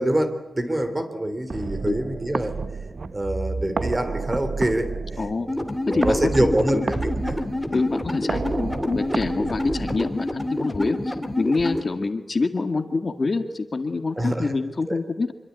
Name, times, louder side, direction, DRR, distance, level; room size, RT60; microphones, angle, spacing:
voice 1, 0.0-2.6 3.1-4.9 5.9-7.4 7.7-7.8 14.2-14.6 14.9-15.0, right 1 dB, 20° right, 9 dB, 3.4 m, -25 dB
sound 1, 1.5-10.5, right 4 dB, 45° right, 1.0 m, -31 dB
voice 2, 5.2-5.5 5.9-6.8 7.7-15.3, left 3 dB, 40° left, 7 dB, 1.9 m, -26 dB
sound 2, 5.5-11.8, left 1 dB, 5° left, 2.4 m, -28 dB
26.0 x 24.0 x 9.6 m, 0.91 s
wide cardioid pair, 140°, 0 cm